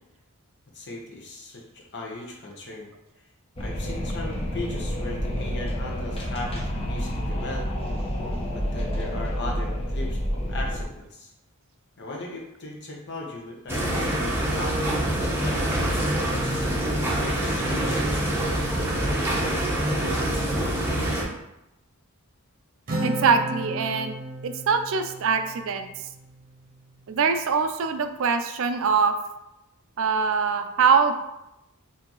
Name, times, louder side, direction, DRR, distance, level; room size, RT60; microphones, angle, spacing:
voice 1, 0.7-2.9 3.2-3.3 3.6-7.7 8.5-11.3 12.0-18.0, left 2 dB, 50° left, -1 dB, 1.0 m, -38 dB
Wind, 3.6-10.8, equal, 25° left, 0.7 m, -29 dB
sound 1, 13.7-21.2, right 1 dB, 10° right, 0.8 m, -25 dB
Acoustic guitar, 22.9-26.5, right 1 dB, 40° right, 0.8 m, -33 dB
voice 2, 23.0-24.1 24.4-25.9 27.1-29.1 30.0-31.1, right 5 dB, 65° right, 8 dB, 0.4 m, -23 dB
5.8 x 2.8 x 3.0 m, 0.89 s
head